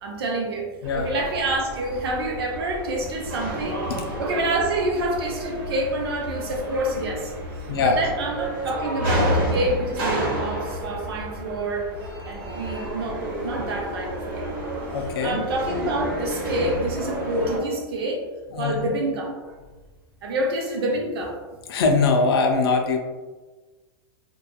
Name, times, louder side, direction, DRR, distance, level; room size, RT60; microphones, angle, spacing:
voice 1, 0.0-3.8 4.2-7.3 7.8-11.9 12.3-14.5 15.0-18.2 18.6-19.3 20.2-21.4, right 1 dB, 85° right, 0 dB, 0.7 m, -27 dB
sound 1, 0.8-17.6, equal, 70° right, 1.2 m, -30 dB
voice 2, 7.7-8.0 14.9-15.4 18.5-18.9 21.7-23.0, left 4 dB, 80° left, 3 dB, 0.4 m, -21 dB
2.8 x 2.3 x 2.2 m, 1.3 s
supercardioid pair, 150°, 13 cm